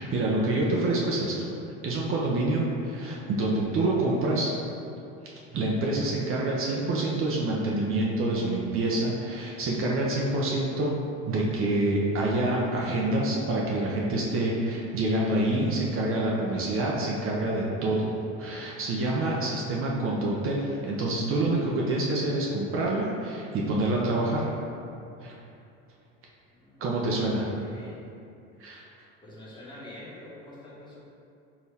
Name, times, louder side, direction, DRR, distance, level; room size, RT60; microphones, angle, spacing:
voice 1, 0.0-1.5 1.8-4.5 5.5-10.9 11.2-24.5 25.2-25.3 26.8-27.5 28.6-28.8, right 2 dB, 45° right, -3 dB, 0.7 m, -27 dB
voice 2, 26.5-26.8 27.5-27.9 29.2-31.0, left 1 dB, 15° left, -8 dB, 1.4 m, -46 dB
4.5 x 2.9 x 3.4 m, 2.6 s
supercardioid pair, 95°, 31 cm